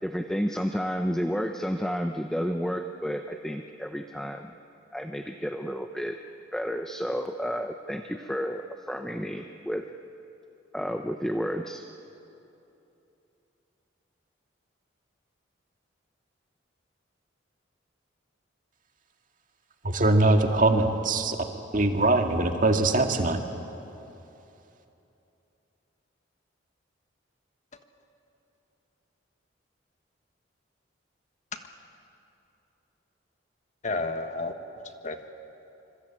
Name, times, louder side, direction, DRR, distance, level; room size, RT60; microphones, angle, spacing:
voice 1, 0.0-4.5 4.9-6.2 6.5-9.9 10.7-11.9, equal, 5° left, 5 dB, 0.7 m, -31 dB
voice 2, 19.8-21.4 21.7-23.4, right 2 dB, 45° right, 4 dB, 1.9 m, -22 dB
voice 3, 33.8-35.3, left 2 dB, 40° left, 7 dB, 1.5 m, -32 dB
26.0 x 25.5 x 8.9 m, 2.9 s
head